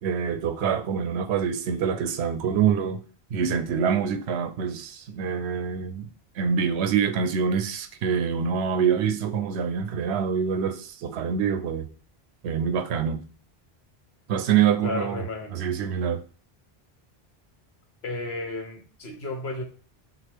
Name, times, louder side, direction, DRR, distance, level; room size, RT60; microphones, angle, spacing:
voice 1, 0.0-3.0 3.3-6.1 6.4-11.9 12.4-13.2 14.3-15.2 15.5-16.2, right 7 dB, 85° right, 0.8 m, -25 dB
voice 2, 14.8-15.7 18.0-19.6, left 2 dB, 75° left, 1.3 m, -33 dB
5.9 x 2.4 x 3.4 m
omnidirectional pair, 1.1 m